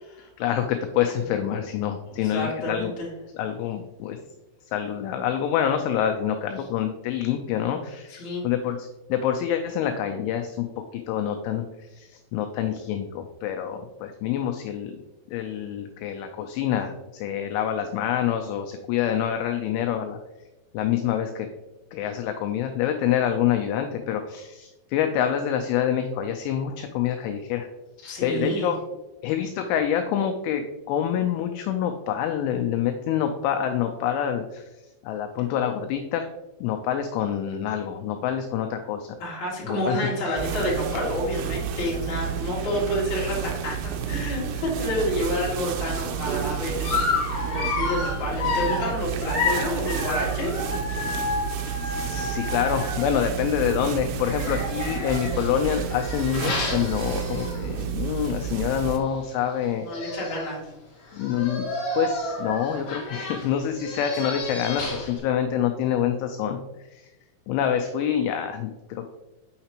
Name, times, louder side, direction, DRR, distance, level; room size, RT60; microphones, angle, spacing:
voice 1, 0.4-2.9 3.3-4.2 4.7-10.7 10.9-11.6 11.9-15.0 15.3-20.2 20.7-21.5 21.9-27.7 28.2-28.8 29.2-34.6 35.0-36.3 36.6-39.1 39.7-40.1 51.4-51.5 51.9-59.8 61.1-61.7 62.0-66.6 67.5-69.1, left 9 dB, 90° left, 5 dB, 2.7 m, -26 dB
voice 2, 2.1-3.1 8.1-8.4 28.0-28.7 39.2-50.6 51.0-51.2 59.8-60.6 61.4-61.5, left 1 dB, 40° left, -5 dB, 1.6 m, -29 dB
sound 1, 40.4-59.0, right 8 dB, 85° right, 3.3 m, -31 dB
Dog, 46.8-53.4 54.2-57.8 58.2-58.4 58.7-58.8 59.6-59.7 59.9-60.5 61.1-65.2, left 2 dB, 60° left, 1.6 m, -30 dB
6.7 x 6.6 x 2.9 m, 1.0 s
omnidirectional pair, 6.0 m